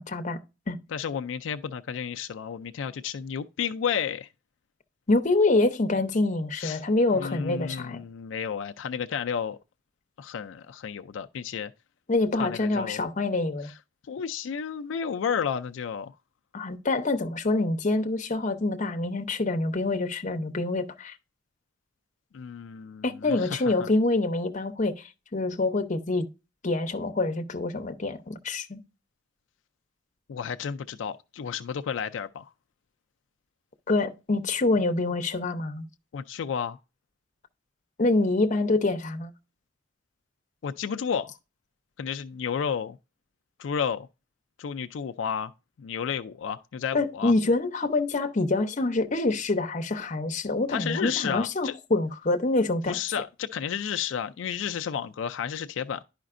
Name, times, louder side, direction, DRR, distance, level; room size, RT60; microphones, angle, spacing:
voice 1, 0.1-0.4 0.7-0.8 5.1-8.0 12.1-13.7 16.5-21.1 23.0-26.3 26.6-28.8 33.9-35.9 38.0-39.3 46.9-53.0, left 2 dB, 40° left, 0.7 m, -26 dB
voice 2, 0.9-4.3 6.6-6.8 7.2-9.6 10.2-11.7 12.4-13.0 14.1-16.1 22.3-23.9 30.3-32.5 36.1-36.8 40.6-41.3 42.0-43.0 43.6-44.1 44.6-45.5 45.8-47.3 50.7-51.8 52.9-56.0, left 7 dB, 85° left, 0.4 m, -32 dB
11.0 x 5.0 x 2.5 m
head